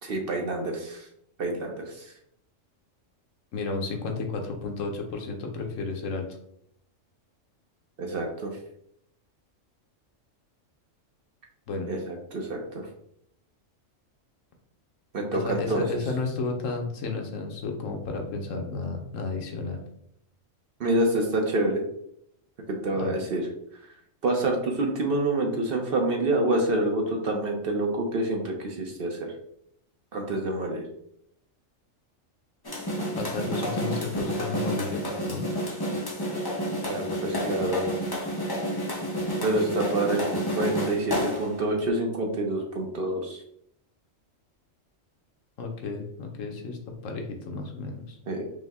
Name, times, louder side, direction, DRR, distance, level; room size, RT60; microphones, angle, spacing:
voice 1, 0.0-1.0 1.4-2.1 8.0-8.5 11.9-12.6 15.1-15.8 20.8-21.8 22.7-23.4 24.2-29.3 30.1-30.8 36.8-37.9 39.4-43.4 48.3-48.4, right 2 dB, 55° right, 2 dB, 0.8 m, -27 dB
voice 2, 3.5-6.3 11.7-11.9 15.3-19.8 22.9-23.2 33.2-35.5 45.6-48.2, left 3 dB, 75° left, 2 dB, 1.1 m, -32 dB
sound 1, 32.6-41.6, equal, 25° left, 0.6 m, -30 dB
5.2 x 2.1 x 3.4 m, 0.73 s
omnidirectional pair, 1.3 m